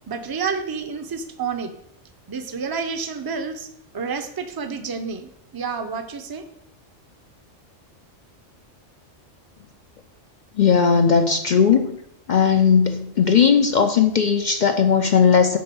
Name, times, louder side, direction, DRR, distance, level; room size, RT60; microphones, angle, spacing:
voice 1, 0.1-1.7 2.3-6.4, right 5 dB, 25° right, 8 dB, 0.5 m, -29 dB
voice 2, 10.6-12.0 12.3-15.6, left 6 dB, 55° left, 7 dB, 0.5 m, -17 dB
7.8 x 4.4 x 6.9 m, 0.74 s
omnidirectional pair, 1.3 m